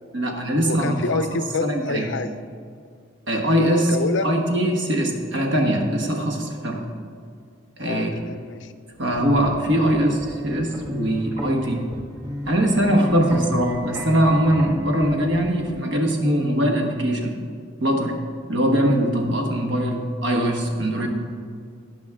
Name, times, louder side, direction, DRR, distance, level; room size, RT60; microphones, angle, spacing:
voice 1, 0.1-1.2 1.6-2.1 3.3-4.0 4.2-6.8 7.8-8.1 9.0-11.8 12.5-17.4 17.8-18.2 18.5-21.1, equal, 65° right, 2 dB, 1.4 m, -21 dB
voice 2, 0.6-2.3 3.9-4.3 7.8-8.7, left 3 dB, 65° left, 11 dB, 0.5 m, -27 dB
sound 1, 8.9-15.7, equal, 15° right, 1.5 m, -35 dB
16.5 x 6.1 x 3.6 m, 2.2 s
head